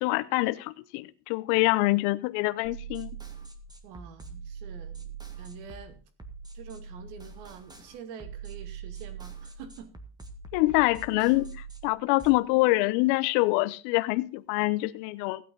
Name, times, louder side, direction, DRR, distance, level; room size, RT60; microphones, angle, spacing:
voice 1, 0.0-3.1 10.5-11.5 11.8-15.4, left 21 dB, 65° left, 14 dB, 0.9 m, -25 dB
sound 1, 2.6-12.4, right 6 dB, 10° right, 1.7 m, -43 dB
voice 2, 3.8-6.0 6.5-9.9, right 7 dB, 75° right, 10 dB, 2.6 m, -46 dB
16.0 x 8.9 x 3.9 m, 0.37 s
supercardioid pair, 135°, 47 cm